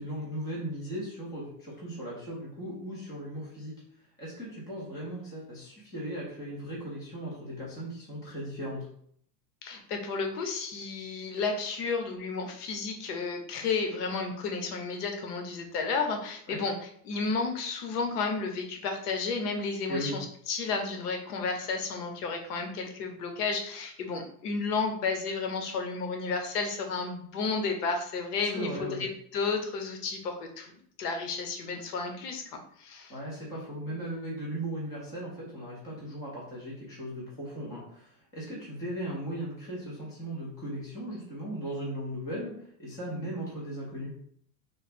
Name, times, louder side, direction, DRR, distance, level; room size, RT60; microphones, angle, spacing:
voice 1, 0.0-3.7 4.2-8.9 16.5-16.6 19.9-20.2 28.5-29.0 33.1-44.1, right 1 dB, 10° left, -6 dB, 0.5 m, -37 dB
voice 2, 9.6-30.7 31.0-33.1, left 4 dB, 90° left, 4 dB, 0.9 m, -32 dB
3.2 x 2.0 x 4.1 m, 0.63 s
supercardioid pair, 175°, 45 cm